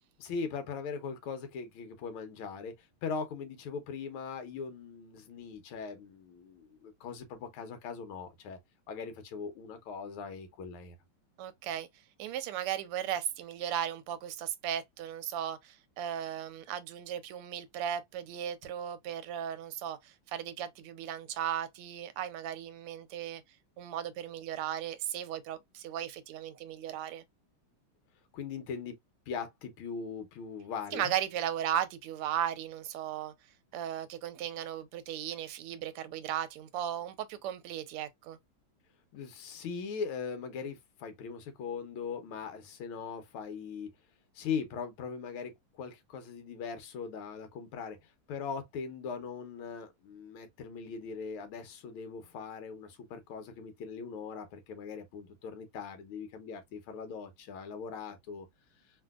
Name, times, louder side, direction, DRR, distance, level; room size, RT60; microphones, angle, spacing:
voice 1, 0.2-8.6 8.9-11.0 28.3-29.0 29.3-31.1 39.1-43.9 44.3-58.5, left 5 dB, 75° left, 1.6 m, -40 dB
voice 2, 11.4-11.9 12.2-23.4 23.8-27.2 30.9-33.3 33.7-38.4, right 10 dB, 90° right, 1.5 m, -36 dB
3.8 x 2.5 x 2.3 m
omnidirectional pair, 2.4 m